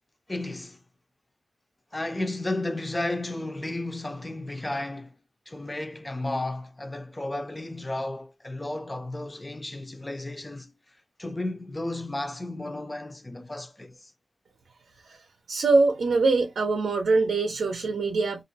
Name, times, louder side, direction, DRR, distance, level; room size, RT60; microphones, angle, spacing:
voice 1, 0.3-0.8 1.9-5.2 5.5-10.7 11.2-14.1, left 2 dB, 20° left, 0.5 m, -33 dB
voice 2, 15.5-18.4, right 3 dB, 85° right, 0.6 m, -23 dB
2.5 x 2.1 x 2.6 m
wide cardioid pair, 85°, 0 cm